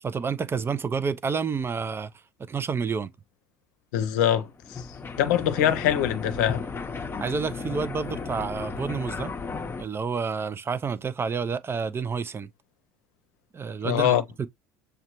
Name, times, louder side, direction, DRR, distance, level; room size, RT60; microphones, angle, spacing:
voice 1, 0.0-2.1 2.4-3.1 7.2-9.3 9.8-12.5 13.5-14.5, right 5 dB, 25° right, 0.4 m, -29 dB
voice 2, 3.9-4.9 5.2-6.6 13.8-14.2, left 10 dB, 75° left, 0.6 m, -23 dB
sound 1, 4.5-9.8, left 4 dB, 25° left, 0.6 m, -35 dB
6.5 x 2.2 x 2.9 m
hypercardioid pair, 70°, 9 cm